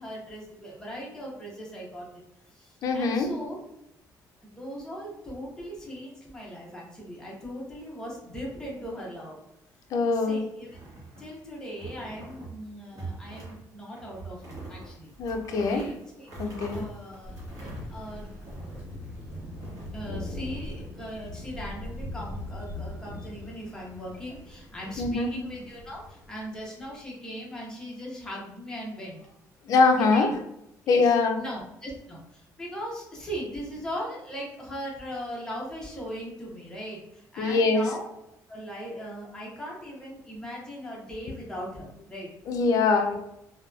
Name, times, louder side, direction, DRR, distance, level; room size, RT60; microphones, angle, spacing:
voice 1, 0.0-2.1 2.5-3.6 4.4-9.4 10.1-10.8 11.2-15.1 15.5-16.3 16.7-18.7 19.2-19.3 19.9-29.4 29.9-30.3 30.9-38.1 38.5-42.3, equal, 10° left, -4 dB, 0.7 m, -39 dB
voice 2, 2.8-3.3 9.9-10.4 15.2-15.8 16.4-16.8 25.0-25.3 29.7-30.3 30.9-31.4 37.4-37.8 42.5-43.2, left 4 dB, 60° left, 5 dB, 0.4 m, -23 dB
sound 1, 10.6-11.4 11.8-12.6 12.9-13.6 13.9-18.9 19.3-20.6, right 2 dB, 55° right, 0.9 m, -43 dB
Thunder, 17.2-26.9, left 1 dB, 25° right, 1.4 m, -41 dB
2.7 x 2.2 x 2.3 m, 0.81 s
cardioid pair, 145°, 7 cm